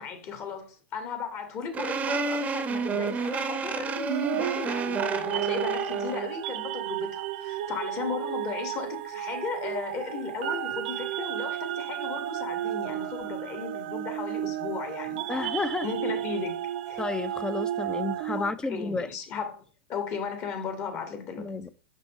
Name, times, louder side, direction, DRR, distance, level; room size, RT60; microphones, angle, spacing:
voice 1, 0.0-16.6 16.9-17.0 18.4-19.6 19.9-21.5, left 6 dB, 40° left, 1.9 m, -36 dB
sound 1, 1.7-6.3, right 4 dB, 25° right, 0.7 m, -30 dB
sound 2, 4.1-18.5, right 12 dB, 65° right, 0.5 m, -33 dB
voice 2, 15.3-15.9 17.0-19.1 21.4-21.7, left 3 dB, 10° left, 0.5 m, -31 dB
6.3 x 5.4 x 3.7 m
hypercardioid pair, 120°, 6 cm